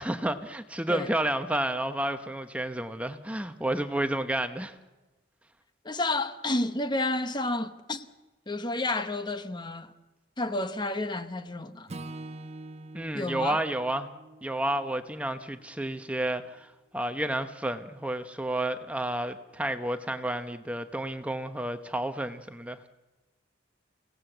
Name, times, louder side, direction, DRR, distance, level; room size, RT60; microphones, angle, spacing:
voice 1, 0.0-4.8 12.9-14.1 14.4-22.8, right 1 dB, 5° right, 0.8 m, -31 dB
voice 2, 5.8-8.1 8.5-9.9 10.4-11.9 13.1-13.6, left 2 dB, 25° left, 0.9 m, -30 dB
Acoustic guitar / Strum, 11.9-16.2, right 2 dB, 35° right, 0.9 m, -45 dB
29.0 x 17.5 x 7.9 m
head